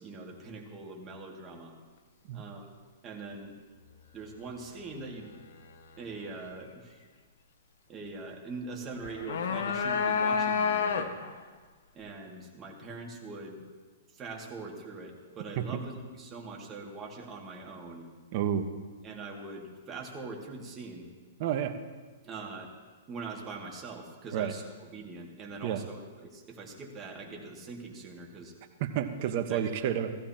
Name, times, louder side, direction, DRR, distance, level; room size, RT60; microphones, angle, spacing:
voice 1, 0.0-1.8 2.3-2.7 3.0-3.6 4.1-5.3 6.0-7.0 7.9-11.1 11.9-13.6 14.1-18.1 19.0-21.1 22.2-22.7 23.1-28.5 29.2-29.9, right 3 dB, 25° right, 0 dB, 2.2 m, -42 dB
sound 1, 9.0-11.4, left 6 dB, 70° left, 0.9 m, -28 dB
voice 2, 18.3-18.7 21.4-21.7 24.3-24.5 25.6-25.8 28.8-30.2, right 9 dB, 50° right, 7 dB, 1.1 m, -30 dB
15.5 x 15.5 x 2.9 m, 1.5 s
hypercardioid pair, 125°, 0 cm